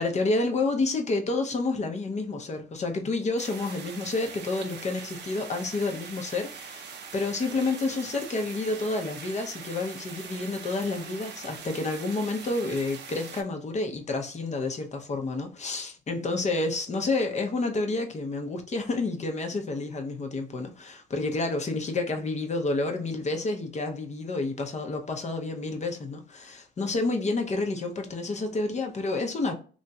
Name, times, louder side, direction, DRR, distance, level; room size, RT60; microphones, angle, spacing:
voice 1, 0.0-29.5, left 3 dB, 35° left, 0.7 m, -29 dB
sound 1, 3.4-13.4, right 6 dB, 60° right, 0.6 m, -42 dB
2.9 x 2.7 x 2.3 m
cardioid pair, 90°, 20 cm